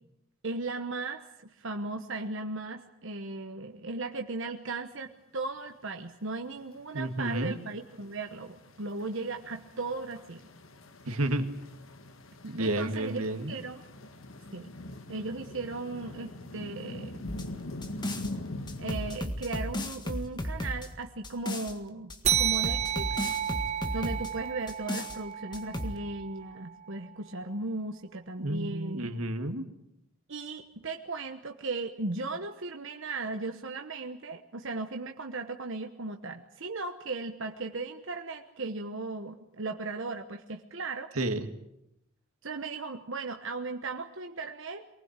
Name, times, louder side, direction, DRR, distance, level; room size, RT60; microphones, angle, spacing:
voice 1, 0.4-10.4 12.6-13.8 14.5-14.7 15.1-17.3 18.8-23.2 23.9-29.1 30.3-41.1 42.4-44.9, right 3 dB, 60° right, 5 dB, 1.1 m, -37 dB
sound 1, 6.4-19.2, left 2 dB, 65° left, 1.5 m, -44 dB
voice 2, 6.9-7.5 11.1-11.5 12.4-13.5 28.4-29.7 41.2-41.5, right 1 dB, 90° right, 7 dB, 2.1 m, -31 dB
sound 2, 17.3-18.3 18.7-21.7 22.1-24.3 24.7-25.2 25.5-26.0, left 1 dB, 20° left, 1.7 m, -34 dB
sound 3, 22.2-27.2, right 10 dB, 30° right, 1.4 m, -32 dB
24.0 x 19.5 x 8.2 m, 0.81 s
head